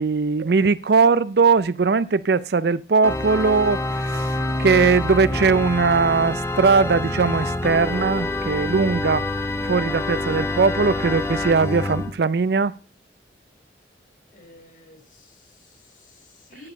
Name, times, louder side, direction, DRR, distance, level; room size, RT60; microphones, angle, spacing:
voice 1, 0.0-9.3 9.6-12.7, right 4 dB, 60° right, 0.4 m, -20 dB
Organ, 3.0-12.1, left 2 dB, 15° left, 1.0 m, -26 dB
voice 2, 14.3-16.7, left 2 dB, 45° left, 3.4 m, -51 dB
11.0 x 8.7 x 5.3 m
head